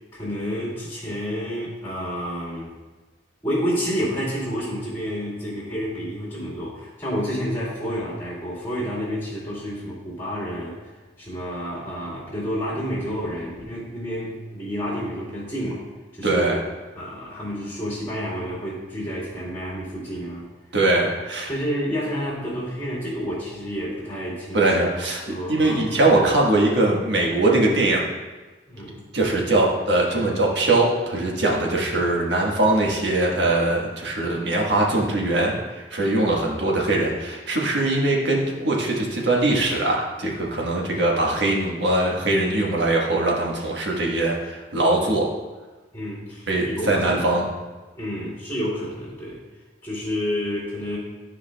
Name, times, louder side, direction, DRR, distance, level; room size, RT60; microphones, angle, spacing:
voice 1, 0.1-2.7 3.4-10.8 11.2-15.8 16.1-16.5 16.9-20.5 21.5-24.7 25.2-25.9 28.7-29.0 45.9-47.3 48.0-49.4 49.8-51.0, equal, 15° left, -8 dB, 2.3 m, -29 dB
voice 2, 16.2-16.6 20.7-21.5 24.5-25.2 25.5-28.0 29.1-45.3 46.5-47.4, right 2 dB, 70° right, -1 dB, 1.3 m, -21 dB
12.5 x 4.9 x 2.2 m, 1.3 s
head